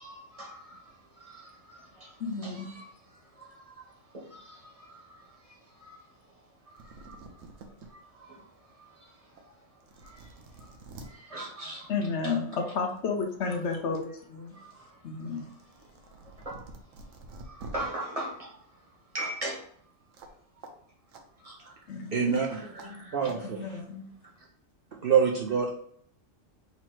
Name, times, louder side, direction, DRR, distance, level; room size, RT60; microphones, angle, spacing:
voice 1, 0.0-11.9 12.2-12.3 14.4-19.9 20.3-20.4 20.7-20.8 21.4-21.9 22.5-23.4 24.2-24.5, right 1 dB, 30° right, -3 dB, 1.2 m, -43 dB
voice 2, 2.2-2.7 11.9-14.6 15.0-15.5 21.9-22.4 23.5-24.1, left 4 dB, 65° left, 3 dB, 1.0 m, -32 dB
sound 1, 6.5-6.6 6.8-7.9 8.4-8.5 9.4-9.5 9.8-11.1 12.4-12.6 13.0-14.0 14.4-17.9 20.1-20.3 20.6-20.7 21.1-21.2 22.3-22.4 22.8-22.9 23.2-23.4, right 2 dB, 80° right, 1.1 m, -48 dB
voice 3, 22.1-22.7 23.1-23.6 25.0-25.7, right 7 dB, 60° right, 0 dB, 0.7 m, -25 dB
4.0 x 3.0 x 4.4 m, 0.63 s
omnidirectional pair, 1.3 m